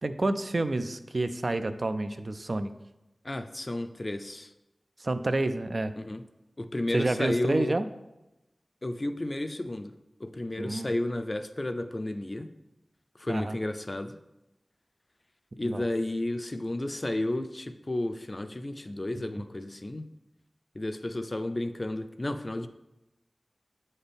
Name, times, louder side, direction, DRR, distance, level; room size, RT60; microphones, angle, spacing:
voice 1, 0.0-2.7 5.0-5.9 6.9-7.9 10.6-10.9 13.3-13.6 15.6-15.8, right 2 dB, 55° right, 9 dB, 0.4 m, -29 dB
voice 2, 3.2-4.5 6.0-6.2 6.6-7.7 8.8-9.9 10.2-12.5 13.2-14.2 15.6-20.1 20.7-22.7, left 1 dB, 40° left, 9 dB, 0.4 m, -32 dB
7.8 x 4.2 x 3.4 m, 0.95 s
wide cardioid pair, 45°, 0 cm